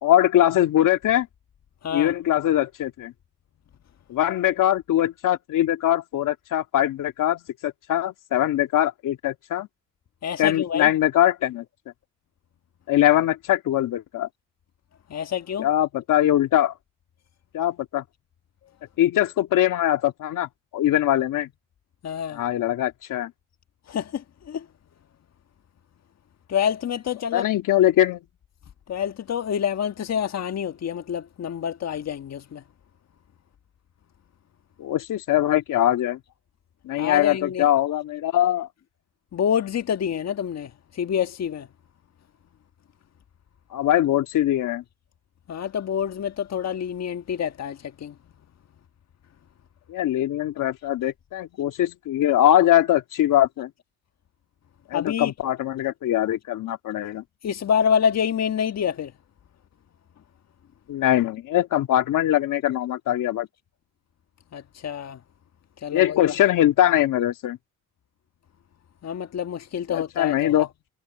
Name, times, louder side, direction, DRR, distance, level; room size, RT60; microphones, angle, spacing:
voice 1, 0.0-1.3 1.9-3.1 4.1-9.7 10.4-11.6 12.9-14.3 15.6-16.7 17.5-18.0 19.0-21.5 22.3-23.3 27.3-28.2 34.8-36.2 36.8-38.7 43.7-44.8 49.9-53.7 54.9-57.2 60.9-63.5 65.9-67.6 69.9-70.7, left 12 dB, 70° left, 2.3 m, -22 dB
voice 2, 1.8-2.1 10.2-10.9 15.1-15.7 22.0-22.4 23.9-24.7 26.5-27.5 28.9-32.6 37.0-37.7 39.3-41.7 45.5-48.2 54.9-55.3 57.4-59.1 64.5-65.2 65.8-66.3 69.0-70.7, left 8 dB, 50° left, 1.6 m, -27 dB
supercardioid pair, 75°, 33 cm